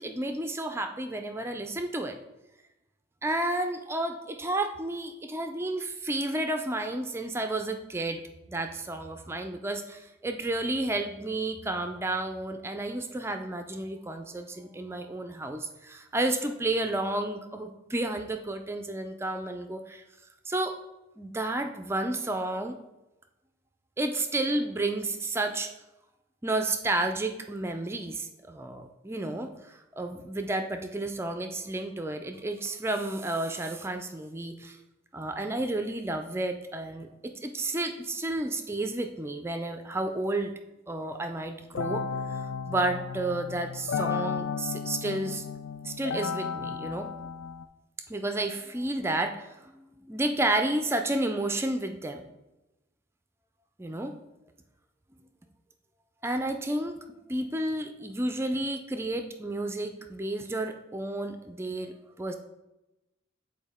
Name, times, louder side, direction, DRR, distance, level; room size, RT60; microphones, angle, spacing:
voice 1, 0.0-2.2 3.2-8.2 8.5-20.0 20.5-20.7 21.2-22.7 24.0-25.7 26.4-34.8 35.1-40.5 40.9-42.0 42.3-45.4 45.8-47.1 48.1-52.2 53.8-54.1 56.2-56.9 57.3-62.3, right 2 dB, 15° right, 6 dB, 0.3 m, -31 dB
sound 1, 41.8-47.7, left 6 dB, 85° left, 0.4 m, -34 dB
7.5 x 4.4 x 3.5 m, 0.97 s
head